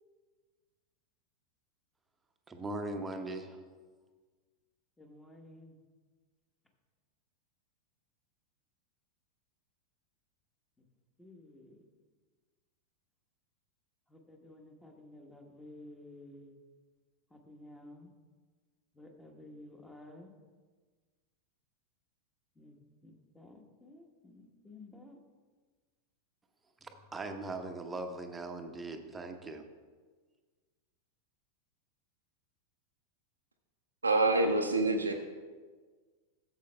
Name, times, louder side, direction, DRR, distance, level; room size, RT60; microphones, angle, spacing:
voice 1, 2.5-3.6 26.8-29.6, right 2 dB, 15° right, 5 dB, 0.8 m, -40 dB
voice 2, 5.0-5.7 11.2-11.8 14.1-16.5 17.3-18.1 19.0-20.3 22.6-22.8 23.0-25.2, left 1 dB, 5° left, 3 dB, 1.2 m, -53 dB
voice 3, 34.0-35.1, right 2 dB, 80° right, 3 dB, 0.6 m, -26 dB
13.5 x 7.7 x 2.3 m, 1.4 s
figure-of-eight pair, 90°, 0 cm